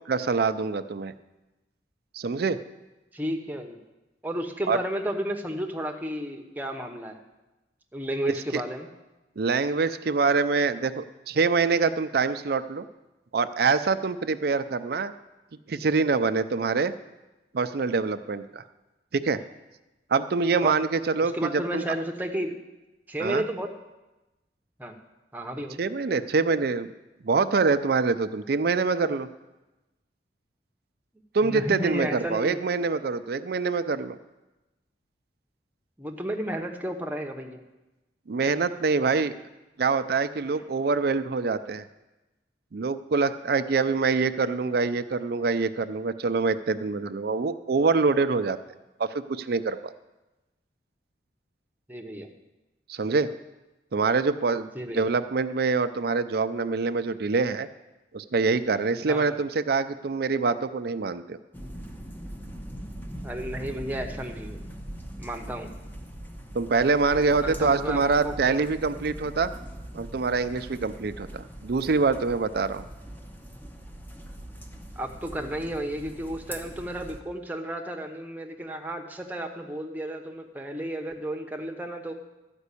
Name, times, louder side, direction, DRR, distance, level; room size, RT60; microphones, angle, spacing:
voice 1, 0.1-1.1 2.1-2.6 4.7-4.8 8.5-8.6 9.4-12.8 13.3-15.1 15.7-16.9 17.5-18.6 19.1-19.4 20.1-21.8 23.2-23.4 25.8-26.9 27.2-29.3 31.3-34.2 38.3-39.3 39.8-41.8 42.7-48.6 49.0-49.9 52.9-53.3 53.9-54.7 54.9-57.7 58.1-61.4 66.5-69.5 69.9-72.8, right 4 dB, 60° right, 11 dB, 0.5 m, -25 dB
voice 2, 3.1-3.8 4.2-7.2 7.9-8.9 20.6-20.8 21.2-22.6 23.1-23.7 24.8-24.9 25.3-25.8 31.4-32.6 36.0-37.6 38.4-38.5 51.9-52.3 54.7-55.1 59.1-59.3 63.2-64.6 65.2-65.7 67.1-68.4 74.9-82.1, right 1 dB, 10° right, 3 dB, 0.9 m, -32 dB
sound 1, 61.5-77.2, equal, 10° left, 0.8 m, -41 dB
13.0 x 5.3 x 8.3 m, 1.0 s
head